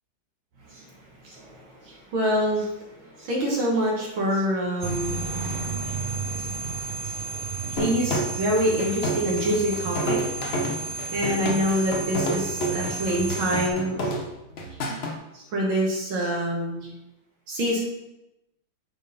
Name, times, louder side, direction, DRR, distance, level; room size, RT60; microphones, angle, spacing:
voice 1, 1.2-2.7 3.2-5.2 7.7-10.2 11.1-14.1 15.3-16.9 17.5-17.8, equal, 70° right, -2 dB, 2.0 m, -26 dB
sound 1, 4.8-13.7, right 4 dB, 40° right, 0.7 m, -32 dB
sound 2, 7.8-15.2, equal, 65° left, 0.6 m, -30 dB
9.2 x 3.7 x 4.1 m, 0.92 s
omnidirectional pair, 2.3 m